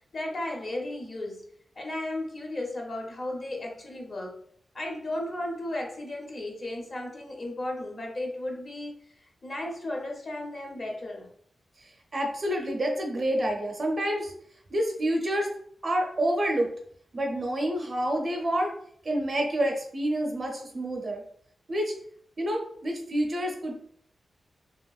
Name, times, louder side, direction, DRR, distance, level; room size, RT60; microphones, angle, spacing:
voice 1, 0.0-1.4 1.8-4.4 4.7-11.3, left 1 dB, 40° left, 0 dB, 0.7 m, -35 dB
voice 2, 12.1-14.3 14.7-15.5 15.8-16.7 17.1-18.7 19.0-21.2 21.7-21.9 22.4-23.7, right 1 dB, 40° right, 1 dB, 0.6 m, -28 dB
3.0 x 2.9 x 2.3 m, 0.62 s
wide cardioid pair, 135°, 0 cm